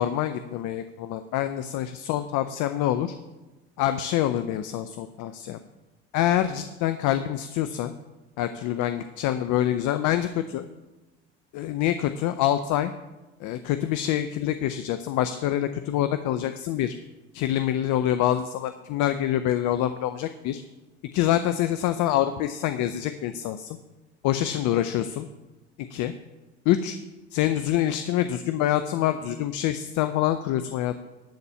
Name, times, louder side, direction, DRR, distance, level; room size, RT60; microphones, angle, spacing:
voice 1, 0.0-3.1 3.8-5.6 6.1-7.9 8.4-10.6 11.5-12.9 13.4-16.9 17.3-20.6 21.1-23.8 24.2-25.3 25.9-26.1 26.7-27.0 27.3-31.0, left 12 dB, 70° left, 10 dB, 0.6 m, -26 dB
12.5 x 4.2 x 8.2 m, 1.1 s
hypercardioid pair, 65°, 32 cm